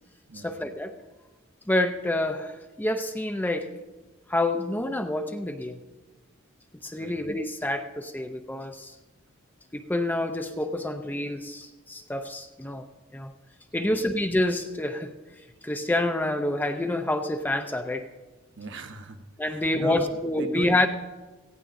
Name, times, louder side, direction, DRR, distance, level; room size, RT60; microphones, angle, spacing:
voice 1, 0.3-0.9 1.7-3.7 4.3-5.8 6.8-8.9 9.7-12.9 13.1-13.3 13.7-15.1 15.6-18.0 19.4-20.9, left 1 dB, 10° left, 6 dB, 0.5 m, -27 dB
voice 2, 18.6-20.0 20.4-20.8, right 2 dB, 60° right, 6 dB, 1.0 m, -37 dB
17.5 x 15.5 x 2.5 m, 1.2 s
head